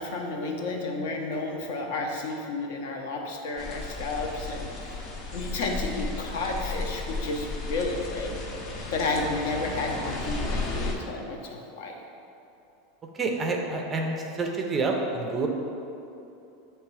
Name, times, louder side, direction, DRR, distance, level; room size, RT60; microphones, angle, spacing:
voice 1, 0.0-5.1 5.3-8.4 8.9-12.0, left 3 dB, 70° left, 1 dB, 0.8 m, -31 dB
sound 1, 3.6-10.9, left 2 dB, 30° left, 0.7 m, -34 dB
voice 2, 13.1-15.5, right 3 dB, 15° right, 2 dB, 0.4 m, -28 dB
7.6 x 3.1 x 4.7 m, 2.8 s
supercardioid pair, 175°, 0 cm